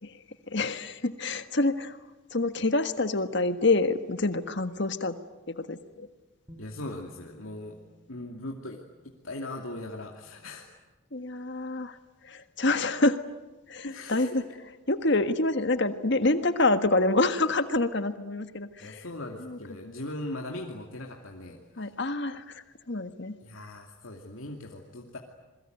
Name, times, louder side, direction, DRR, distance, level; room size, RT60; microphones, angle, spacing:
voice 1, 0.0-2.0 2.3-5.2 5.5-6.1 11.1-12.0 12.2-13.2 13.7-14.4 14.9-19.0 19.4-19.6 21.8-23.3, left 2 dB, 55° left, 9 dB, 1.6 m, -27 dB
Bass guitar, 6.5-10.4 11.6-11.7, left 1 dB, 20° right, 3.3 m, -57 dB
voice 2, 6.6-7.8 8.1-8.8 9.0-10.6 13.8-14.4 18.8-21.9 23.4-25.2, left 1 dB, 75° left, 0 dB, 2.6 m, -39 dB
28.0 x 22.5 x 9.3 m, 1.1 s
head